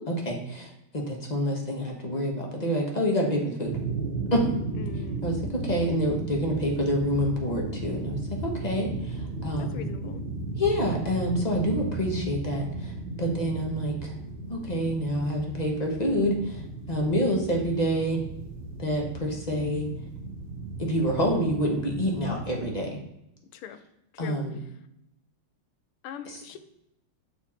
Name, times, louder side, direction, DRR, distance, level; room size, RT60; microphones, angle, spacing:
voice 1, 0.1-3.7 4.3-4.4 5.2-9.9 10.5-14.1 14.5-16.6 16.9-18.2 18.8-19.9 20.8-22.9 24.2-24.5 26.3-26.4, equal, 35° left, 0 dB, 0.6 m, -27 dB
sound 1, 3.7-22.7, right 3 dB, 70° right, 1.7 m, -35 dB
voice 2, 4.8-5.2 9.6-10.3 23.5-23.8 24.1-24.4 26.0-26.6, left 8 dB, 85° left, 10 dB, 1.5 m, -40 dB
6.9 x 4.4 x 4.2 m, 0.81 s
omnidirectional pair, 2.4 m